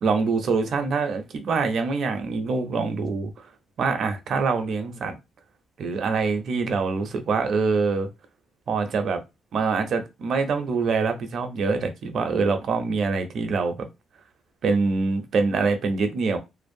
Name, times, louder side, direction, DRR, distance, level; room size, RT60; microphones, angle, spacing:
voice 1, 0.0-3.5 3.8-5.2 5.8-8.1 8.7-9.2 9.5-13.9 14.6-16.4, right 4 dB, 50° right, 0.5 m, -25 dB
2.6 x 2.0 x 2.5 m
cardioid pair, 155°, 0 cm